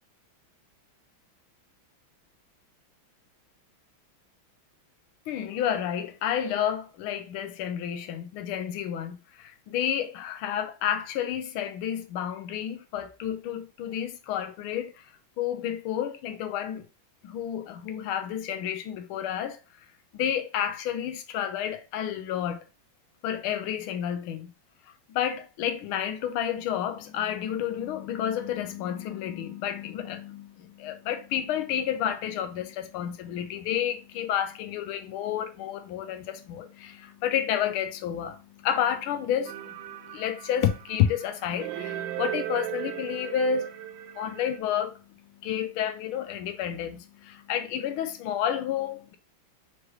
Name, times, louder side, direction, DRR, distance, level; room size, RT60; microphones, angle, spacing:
voice 1, 5.3-14.9 15.4-16.8 17.2-19.6 20.1-22.6 23.2-24.5 25.1-43.8 44.1-45.0 45.4-49.2, left 9 dB, 90° left, 1.5 m, -30 dB
sound 1, 39.5-44.6, right 13 dB, 85° right, 1.4 m, -37 dB
5.0 x 3.1 x 3.1 m
omnidirectional pair, 2.2 m